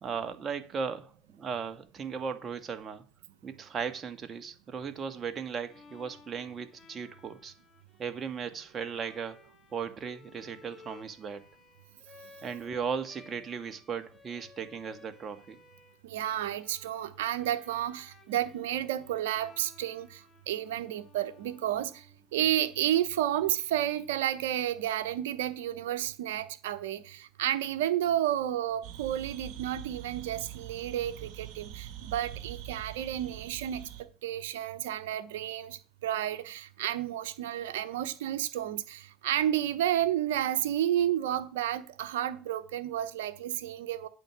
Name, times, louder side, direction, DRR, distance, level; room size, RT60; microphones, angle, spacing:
voice 1, 0.0-3.0 3.4-7.5 8.0-9.4 9.7-11.5 12.4-15.6, right 6 dB, 35° right, 1.6 m, -37 dB
Bowed string instrument, 5.7-22.6, left 4 dB, 20° left, 2.4 m, -57 dB
voice 2, 16.0-22.0 22.3-33.9 34.2-44.1, right 12 dB, 85° right, 1.0 m, -31 dB
sound 1, 28.8-34.0, right 11 dB, 65° right, 2.2 m, -44 dB
9.0 x 4.6 x 7.4 m
supercardioid pair, 90°, 0 cm